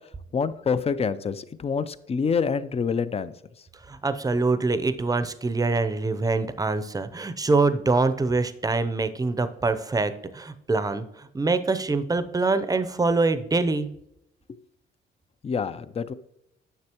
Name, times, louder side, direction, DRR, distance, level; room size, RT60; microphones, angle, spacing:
voice 1, 0.3-3.3 15.4-16.1, left 6 dB, 30° left, 0.5 m, -26 dB
voice 2, 3.9-13.9, right 3 dB, 20° right, 0.6 m, -24 dB
9.6 x 6.9 x 3.0 m
cardioid pair, 90°, 20 cm